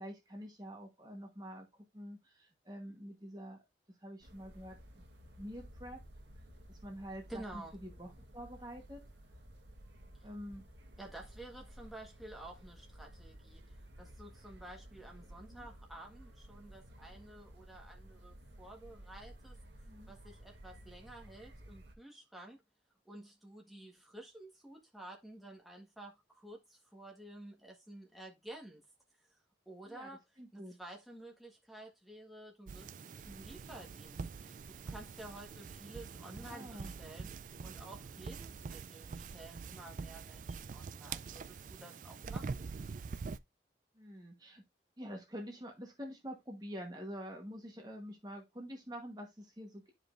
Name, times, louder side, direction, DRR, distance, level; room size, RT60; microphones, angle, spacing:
voice 1, 0.0-3.6 4.0-5.0 5.4-6.0 6.7-9.0 10.2-10.6 15.5-15.7 19.8-20.1 29.9-30.1 30.4-30.7 36.3-36.9 43.9-44.6 45.0-49.9, equal, 20° right, 1.2 m, -47 dB
sound 1, 4.2-21.9, equal, 85° right, 1.2 m, -55 dB
voice 2, 7.3-7.7 10.2-10.3 11.0-19.6 20.1-22.6 23.0-28.8 29.3-30.2 30.5-32.9 33.2-34.6 34.8-37.3 37.6-42.6, right 1 dB, ahead, 1.4 m, -51 dB
sound 2, 32.7-43.4, right 5 dB, 45° right, 0.3 m, -45 dB
10.5 x 5.0 x 2.5 m
head